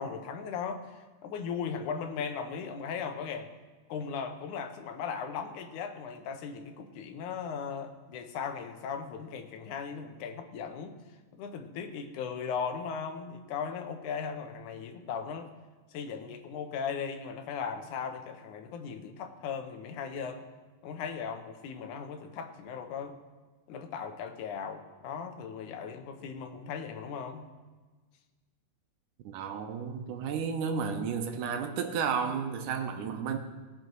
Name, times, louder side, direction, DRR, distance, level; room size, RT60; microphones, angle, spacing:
voice 1, 0.0-3.5 3.9-11.0 11.3-15.5 15.9-20.5 20.8-23.2 23.7-27.4, left 6 dB, 75° left, 6 dB, 2.4 m, -37 dB
voice 2, 29.2-33.4, right 6 dB, 80° right, 5 dB, 2.4 m, -32 dB
18.5 x 6.3 x 4.6 m, 1.3 s
omnidirectional pair, 3.6 m